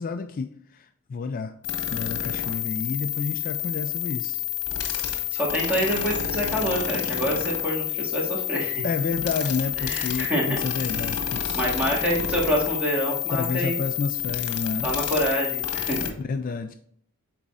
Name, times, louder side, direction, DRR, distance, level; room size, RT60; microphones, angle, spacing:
voice 1, 0.0-1.5 1.8-4.4 8.8-11.7 13.3-14.9 16.3-16.7, left 4 dB, 40° left, 8 dB, 0.3 m, -30 dB
sound 1, 1.6-16.1, left 10 dB, 75° left, 1.2 m, -29 dB
voice 2, 5.3-8.8 9.8-10.6 11.5-13.8 14.8-16.1, equal, 5° right, -4 dB, 2.0 m, -26 dB
10.0 x 4.1 x 2.5 m, 0.64 s
head